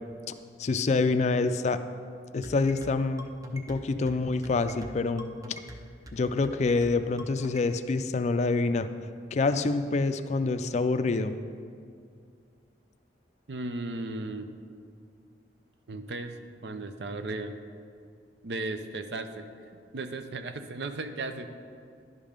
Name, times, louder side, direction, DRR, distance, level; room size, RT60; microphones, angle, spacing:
voice 1, 0.6-1.8 2.3-5.3 6.1-8.9 9.3-11.4, left 3 dB, 40° left, 10 dB, 0.3 m, -26 dB
sound 1, 2.4-7.7, right 1 dB, 20° right, 0.5 m, -45 dB
voice 2, 13.5-14.5 15.9-16.3 16.6-17.6 18.4-19.4 19.9-21.5, right 2 dB, 70° right, 8 dB, 0.6 m, -35 dB
11.0 x 5.2 x 5.2 m, 2.3 s
head